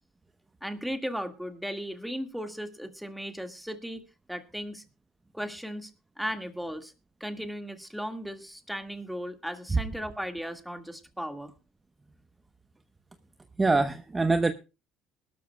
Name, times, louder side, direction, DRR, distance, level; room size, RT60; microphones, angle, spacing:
voice 1, 0.6-4.0 4.3-4.8 5.3-5.9 6.2-6.9 7.2-11.5, equal, ahead, 7 dB, 1.8 m, -36 dB
voice 2, 13.6-14.5, right 3 dB, 20° right, 9 dB, 0.9 m, -24 dB
21.0 x 13.0 x 2.2 m, 0.29 s
cardioid pair, 100°, 0 cm